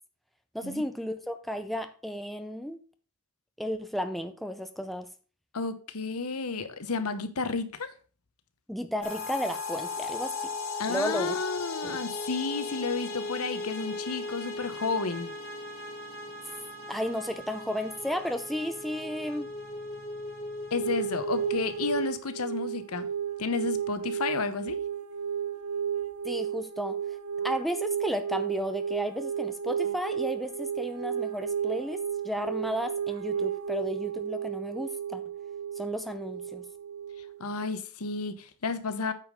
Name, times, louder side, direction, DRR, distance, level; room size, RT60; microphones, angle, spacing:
voice 1, 0.5-2.8 3.6-5.1 8.7-10.5 10.9-11.4 11.8-12.0 16.9-19.5 26.2-27.0 27.4-35.2 35.8-36.6, equal, ahead, 0.5 m, -33 dB
voice 2, 5.5-7.9 10.8-15.3 20.7-23.1 23.4-24.8 37.4-39.1, left 4 dB, 85° left, 1.0 m, -32 dB
sound 1, 9.0-22.1, left 3 dB, 60° left, 2.8 m, -37 dB
sound 2, 20.8-37.7, right 8 dB, 80° right, 0.5 m, -33 dB
8.8 x 5.1 x 5.2 m
head